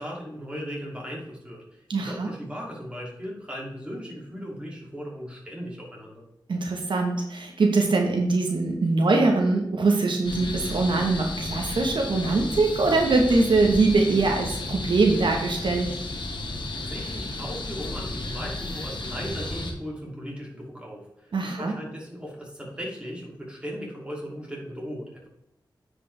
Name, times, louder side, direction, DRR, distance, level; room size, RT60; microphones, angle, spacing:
voice 1, 0.0-6.2 16.4-25.3, equal, 15° right, -3 dB, 2.5 m, -37 dB
voice 2, 1.9-2.3 6.5-15.9 21.3-21.7, right 3 dB, 75° right, 2 dB, 1.2 m, -22 dB
sound 1, 10.2-19.7, left 2 dB, 70° left, 1.3 m, -33 dB
9.6 x 5.1 x 3.3 m, 0.81 s
wide cardioid pair, 90°, 8 cm